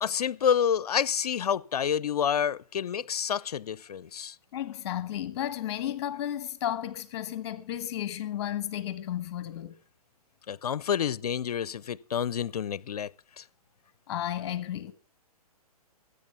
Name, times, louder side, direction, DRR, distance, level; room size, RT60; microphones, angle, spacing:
voice 1, 0.0-4.4 10.5-13.1 13.4-13.5, left 8 dB, 75° left, 0.6 m, -28 dB
voice 2, 4.5-9.7 14.1-14.9, left 11 dB, 45° left, 1.3 m, -33 dB
13.5 x 8.2 x 6.8 m
hypercardioid pair, 140°, 20 cm